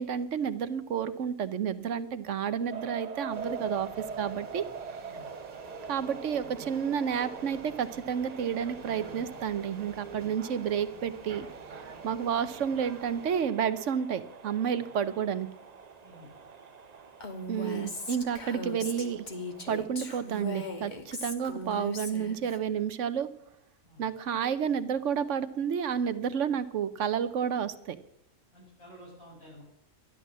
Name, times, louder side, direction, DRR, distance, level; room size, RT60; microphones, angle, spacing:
voice 1, 0.0-4.6 5.9-11.5 12.0-15.5 17.5-19.2 19.7-23.3 24.0-28.0, right 8 dB, 65° right, 13 dB, 1.0 m, -30 dB
sound 1, 2.7-19.8, right 5 dB, 40° right, 0.6 m, -45 dB
sound 2, 3.3-13.5, right 3 dB, 85° right, 2.1 m, -47 dB
Female speech woman speaking, 17.2-22.6, left 2 dB, 35° left, 1.4 m, -38 dB
voice 2, 28.5-29.6, equal, 80° left, -3 dB, 6.9 m, -51 dB
12.5 x 11.0 x 7.3 m, 0.75 s
omnidirectional pair, 1.4 m